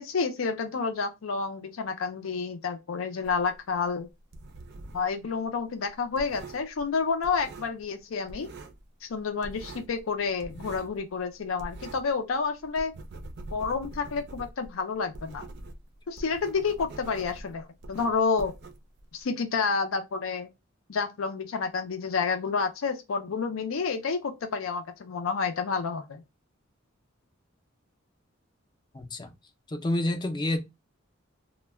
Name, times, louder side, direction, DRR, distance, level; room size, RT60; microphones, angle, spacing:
voice 1, 0.0-4.1 4.9-8.5 9.0-12.9 13.5-15.5 16.1-18.5 19.1-20.5 20.9-26.2, left 5 dB, 90° left, 0.5 m, -29 dB
sound 1, 3.2-5.2 5.4-8.0 8.3-8.9 9.1-12.2 12.5-19.2, right 2 dB, 55° right, 0.4 m, -44 dB
voice 2, 28.9-29.3 29.7-30.6, left 1 dB, 20° left, 0.4 m, -28 dB
2.2 x 2.1 x 3.2 m
head